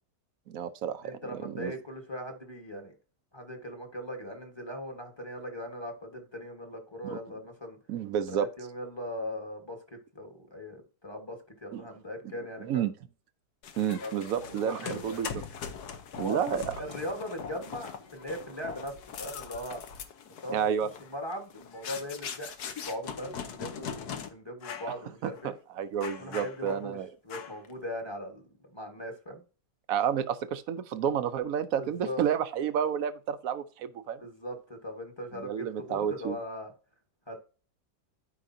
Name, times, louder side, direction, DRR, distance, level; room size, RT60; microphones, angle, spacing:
voice 1, 0.5-1.2 1.4-1.7 7.0-7.2 7.9-8.5 11.7-11.8 12.6-12.9 13.8-15.3 16.2-16.8 20.5-20.9 25.2-27.1 29.9-34.2 35.3-36.4, right 8 dB, 65° right, 0.9 m, -30 dB
voice 2, 1.0-2.9 3.3-7.8 8.3-12.9 14.0-15.2 16.2-19.8 20.4-20.7 21.1-25.5 26.2-27.0 27.2-29.4 31.8-32.2 34.2-36.7 37.3-37.4, left 1 dB, 15° left, 1.3 m, -39 dB
sound 1, 13.6-24.3 24.6-25.0 25.3-25.5 26.0-26.9 27.3-27.7, left 7 dB, 65° left, 1.4 m, -41 dB
12.5 x 5.0 x 2.7 m
omnidirectional pair, 1.9 m